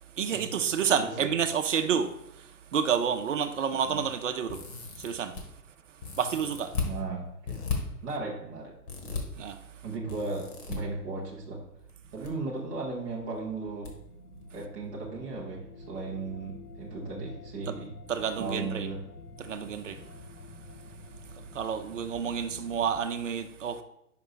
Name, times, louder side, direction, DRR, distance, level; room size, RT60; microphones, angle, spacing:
voice 1, 0.2-2.1 2.7-4.6 5.0-5.3 6.2-6.7 9.4-9.6 17.7-17.8 18.1-18.9 19.4-20.0 21.5-23.8, right 7 dB, 55° right, 0.7 m, -29 dB
sound 1, 4.5-5.4 6.0-6.9 7.5-7.8 8.9-9.2 10.1-10.8 11.9-12.3 12.6-12.7 13.8-13.9 14.3-14.4, left 5 dB, 35° left, 1.4 m, -35 dB
voice 2, 6.8-8.7 9.8-11.6 12.1-13.9 14.5-17.9 18.4-19.0, right 3 dB, 10° right, 0.5 m, -36 dB
sound 2, 13.5-23.0, left 3 dB, 75° left, 1.0 m, -49 dB
5.2 x 5.1 x 4.9 m
figure-of-eight pair, 115°, 46 cm